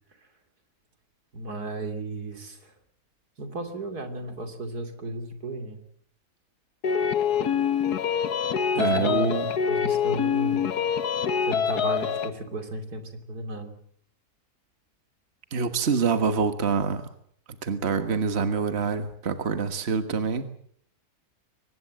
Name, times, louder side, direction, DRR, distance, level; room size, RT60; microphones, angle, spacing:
voice 1, 1.3-2.7 3.4-5.8 8.8-10.8 11.4-13.7, right 2 dB, 80° right, 7 dB, 3.5 m, -34 dB
sound 1, 6.8-12.3, left 7 dB, 85° left, 1.8 m, -25 dB
voice 2, 8.7-9.5 15.5-17.1 17.6-20.5, right 5 dB, 45° right, 9 dB, 1.7 m, -26 dB
23.5 x 20.0 x 7.6 m, 0.64 s
omnidirectional pair, 1.6 m